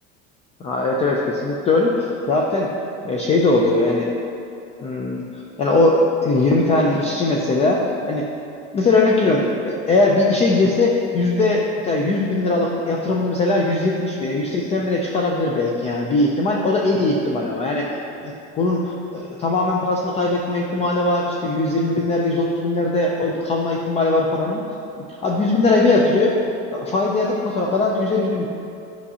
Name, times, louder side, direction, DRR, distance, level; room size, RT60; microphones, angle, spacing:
voice 1, 0.6-2.7 3.0-4.1 4.8-5.2 5.6-7.8 8.1-8.3 8.7-18.8 19.1-24.6 25.2-26.3 26.7-28.5, left 2 dB, 20° left, -1 dB, 0.3 m, -20 dB
9.8 x 5.7 x 2.8 m, 2.7 s
cardioid pair, 160°, 32 cm